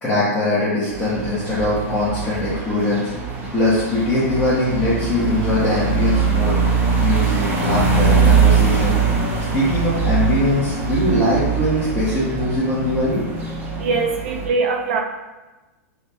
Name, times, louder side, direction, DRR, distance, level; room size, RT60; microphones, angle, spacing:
voice 1, 0.0-3.1 3.5-6.6 7.0-9.0 9.5-13.2, left 1 dB, 10° left, -12 dB, 1.1 m, -21 dB
sound 1, 0.9-14.5, right 5 dB, 20° right, 0.6 m, -21 dB
voice 2, 13.6-15.0, right 4 dB, 60° right, 2 dB, 0.4 m, -22 dB
3.3 x 3.0 x 2.9 m, 1.1 s
hypercardioid pair, 135°, 8 cm